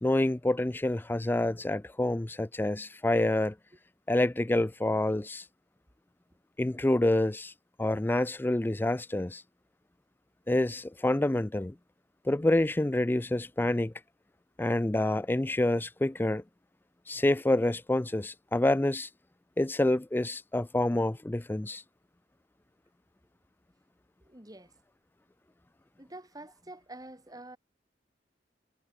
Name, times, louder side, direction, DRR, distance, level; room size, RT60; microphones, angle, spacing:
voice 1, 0.0-3.6 4.1-5.4 6.6-7.5 7.8-9.4 10.5-11.8 12.3-13.9 14.6-16.4 17.1-19.1 19.6-21.8, left 1 dB, 10° left, 0.4 m, -27 dB
voice 2, 24.2-24.7 26.0-27.6, right 2 dB, 20° right, 4.1 m, -47 dB
head